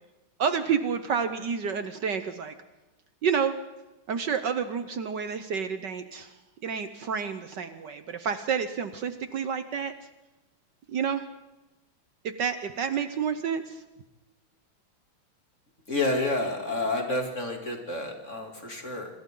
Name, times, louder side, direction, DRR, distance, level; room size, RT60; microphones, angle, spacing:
voice 1, 0.4-2.5 3.2-3.5 4.1-6.3 6.6-9.9 10.9-11.2 12.2-13.8, right 6 dB, 60° right, 9 dB, 1.5 m, -29 dB
voice 2, 15.9-19.1, left 2 dB, 35° left, 2 dB, 3.3 m, -29 dB
27.0 x 25.5 x 3.9 m, 1.0 s
omnidirectional pair, 2.3 m